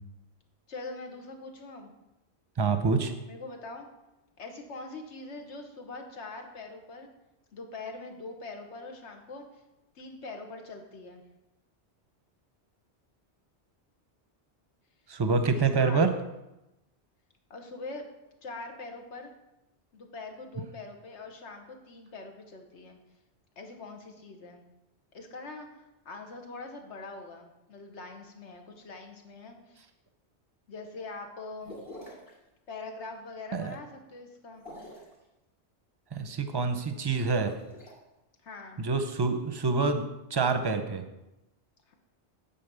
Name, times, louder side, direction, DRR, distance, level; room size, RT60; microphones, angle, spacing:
voice 1, 0.7-1.9 3.3-3.9 4.4-7.1 7.5-9.6 9.9-11.2 15.5-16.0 17.5-18.1 18.4-19.3 19.9-23.0 23.6-24.6 25.1-29.8 30.7-31.8 32.7-34.6 38.4-38.8 41.9-42.0, left 3 dB, 90° left, 4 dB, 1.4 m, -43 dB
voice 2, 2.6-3.1 15.1-16.1 33.5-33.8 36.1-37.5 38.8-40.0 40.3-41.0, right 4 dB, 30° right, 8 dB, 0.6 m, -26 dB
sound 1, 31.6-32.3 34.5-35.2 37.3-37.9, left 1 dB, 55° left, 2.7 m, -46 dB
9.3 x 4.2 x 6.7 m, 0.96 s
omnidirectional pair, 1.1 m